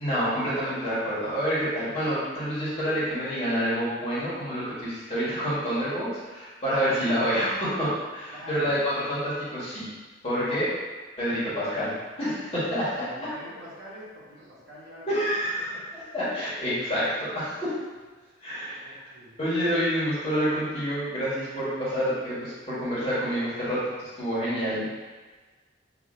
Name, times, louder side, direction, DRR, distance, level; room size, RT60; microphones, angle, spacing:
voice 1, 0.0-9.9 10.2-10.7 11.2-12.9 15.1-17.7 18.4-19.1 19.4-23.8 24.2-24.9, equal, 30° left, -11 dB, 1.4 m, -28 dB
voice 2, 8.3-8.7 12.7-15.1 15.5-15.8 18.8-19.4, equal, 75° right, -9 dB, 1.3 m, -45 dB
4.1 x 2.8 x 2.5 m, 1.3 s
head